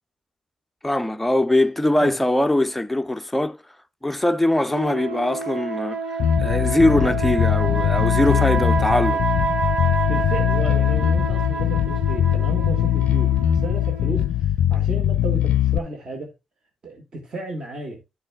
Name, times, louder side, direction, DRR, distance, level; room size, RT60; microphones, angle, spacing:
voice 1, 0.8-3.6 4.0-6.0 6.4-9.2, left 1 dB, 5° left, 0.6 m, -21 dB
sound 1, 4.7-14.4, right 5 dB, 75° right, 2.0 m, -28 dB
Bass guitar, 6.2-15.8, left 11 dB, 75° left, 0.4 m, -21 dB
voice 2, 10.1-16.3 16.8-18.0, right 2 dB, 35° right, 1.9 m, -33 dB
11.0 x 6.5 x 2.3 m
wide cardioid pair, 170°, 2 cm